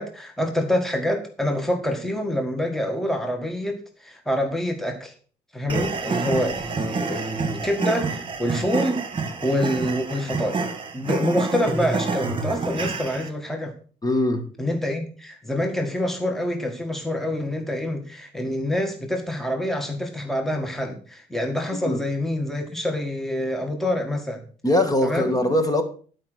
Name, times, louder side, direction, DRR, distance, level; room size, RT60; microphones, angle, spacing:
voice 1, 0.0-5.1 5.5-13.7 14.6-24.4 25.0-25.3, left 1 dB, ahead, 1.7 m, -26 dB
sound 1, 5.7-13.3, right 4 dB, 35° right, 1.6 m, -28 dB
voice 2, 14.0-14.5 21.7-22.0 24.6-25.8, left 1 dB, 25° left, 1.8 m, -22 dB
11.5 x 5.1 x 6.3 m
cardioid pair, 95°, 16 cm